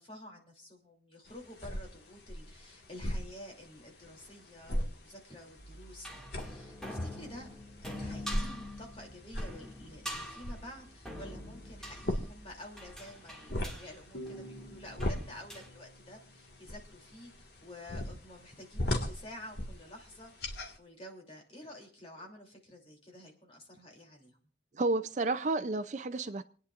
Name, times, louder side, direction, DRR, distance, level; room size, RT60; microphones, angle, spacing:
voice 1, 0.0-6.1 6.4-7.5 7.8-24.4, left 1 dB, 30° left, 0 dB, 3.0 m, -50 dB
sound 1, 1.3-20.8, left 1 dB, 55° left, 1.8 m, -40 dB
sound 2, 5.6-15.7, left 1 dB, 5° left, 2.1 m, -45 dB
sound 3, 14.1-17.6, right 1 dB, 85° left, 3.9 m, -50 dB
voice 2, 24.8-26.4, right 2 dB, 40° right, 11 dB, 0.5 m, -31 dB
28.5 x 9.8 x 2.5 m, 0.43 s
head